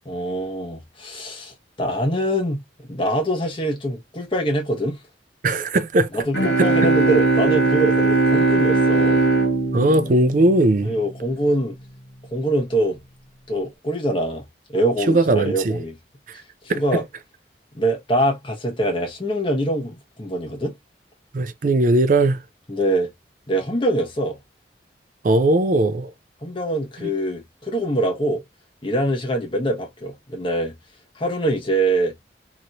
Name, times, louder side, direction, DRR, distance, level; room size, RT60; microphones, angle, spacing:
voice 1, 0.1-5.0 6.1-9.2 10.8-11.8 12.3-13.0 13.5-16.0 16.7-17.0 17.7-20.7 22.7-23.1 23.5-24.4 26.4-28.4 28.8-30.7 31.1-32.1, right 1 dB, 30° left, 1.1 m, -24 dB
voice 2, 5.4-6.1 6.6-6.7 9.7-10.9 15.1-15.8 16.3-16.4 16.7-17.0 21.3-22.4 25.2-26.1 27.0-27.1, right 2 dB, 45° right, 0.4 m, -19 dB
sound 1, 6.3-11.0, right 3 dB, 75° left, 1.0 m, -19 dB
3.0 x 2.8 x 2.5 m
head